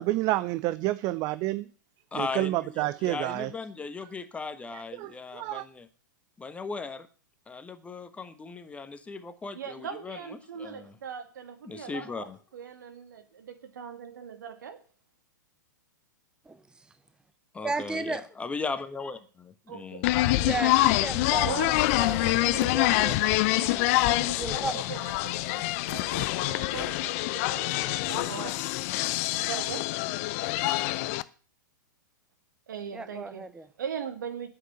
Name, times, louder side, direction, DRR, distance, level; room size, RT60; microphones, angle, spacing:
voice 1, 0.0-1.7 2.2-3.5 5.0-5.7, right 17 dB, 35° right, 0.5 m, -29 dB
voice 2, 2.1-5.9 6.4-7.1 7.5-10.2 10.6-10.9 11.6-12.4 17.5-20.1, left 4 dB, 10° left, 1.2 m, -37 dB
voice 3, 9.5-14.8 19.7-20.2 21.4-28.6 29.4-30.0 32.7-33.5 33.8-34.5, right 7 dB, 70° right, 2.2 m, -40 dB
voice 4, 17.6-18.2 20.4-23.9 24.4-24.8 32.9-33.7, right 3 dB, 10° right, 0.9 m, -35 dB
sound 1, 20.0-31.2, left 18 dB, 45° left, 0.6 m, -26 dB
9.8 x 7.9 x 8.1 m
hypercardioid pair, 110°, 10 cm